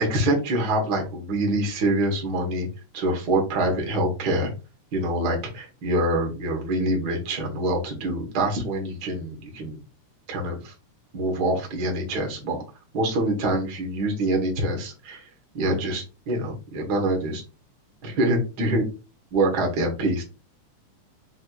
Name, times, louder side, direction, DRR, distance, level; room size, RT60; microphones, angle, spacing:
voice 1, 0.0-2.7 2.9-4.5 4.9-9.8 10.3-10.7 11.1-12.6 12.9-15.2 15.5-17.4 18.0-18.9 19.3-20.2, right 1 dB, 55° right, 1 dB, 1.2 m, -25 dB
6.0 x 2.6 x 2.3 m, 0.30 s
omnidirectional pair, 3.4 m